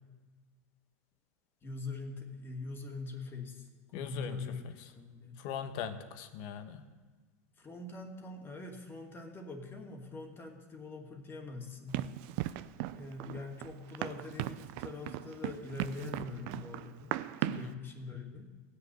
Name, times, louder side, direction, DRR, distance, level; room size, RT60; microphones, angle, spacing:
voice 1, 1.6-3.7 3.9-4.6 4.9-5.4 7.6-12.1 12.9-17.2 17.5-18.5, left 3 dB, 25° left, 3 dB, 2.5 m, -43 dB
voice 2, 3.9-4.4 4.6-4.9 5.4-6.8 17.5-17.8, left 7 dB, 60° left, 9 dB, 1.4 m, -40 dB
Run, 11.9-17.7, right 15 dB, 60° right, 0.6 m, -38 dB
16.5 x 6.9 x 9.2 m, 1.3 s
hypercardioid pair, 100°, 9 cm